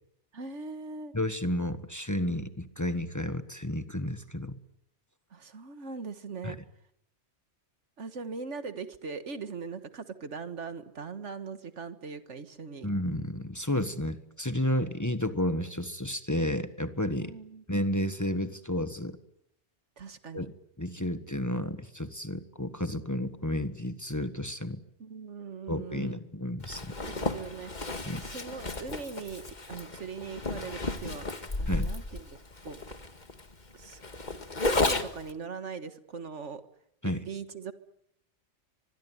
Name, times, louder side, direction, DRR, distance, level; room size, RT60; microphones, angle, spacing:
voice 1, 0.3-1.1 5.3-6.6 8.0-12.9 17.2-17.6 20.0-20.5 25.0-26.2 27.0-27.7 28.1-32.3 32.6-32.8 33.7-34.0 34.7-36.6 37.3-37.7, right 5 dB, 80° right, 10 dB, 1.8 m, -40 dB
voice 2, 1.1-4.6 6.4-6.5 12.8-17.3 17.7-19.2 20.3-20.5 20.8-24.8 25.7-26.9 28.0-28.2 31.7-31.9 37.0-37.2, left 1 dB, 15° left, 9 dB, 1.4 m, -31 dB
Zipper (clothing), 26.6-35.3, left 2 dB, 40° left, 1.9 m, -33 dB
24.5 x 21.5 x 9.5 m, 0.76 s
omnidirectional pair, 1.2 m